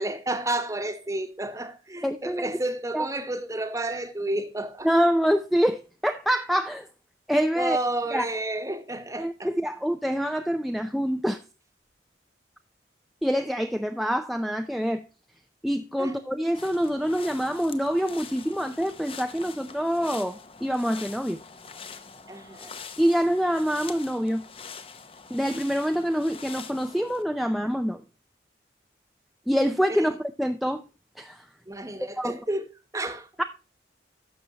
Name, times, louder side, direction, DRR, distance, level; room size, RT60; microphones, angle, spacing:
voice 1, 0.0-4.9 7.6-9.5 16.0-16.2 22.3-22.7 29.9-30.1 31.7-33.3, right 1 dB, 15° right, 1.0 m, -31 dB
voice 2, 2.0-2.5 2.9-3.1 4.8-6.9 7.3-7.8 8.1-8.3 9.2-11.4 13.2-15.0 15.6-21.4 23.0-24.4 25.3-28.0 29.5-30.8 31.2-31.4 32.2-32.4 33.4-33.5, equal, ahead, 0.4 m, -26 dB
sound 1, 16.5-27.2, left 5 dB, 30° left, 0.7 m, -44 dB
12.0 x 6.9 x 2.8 m
head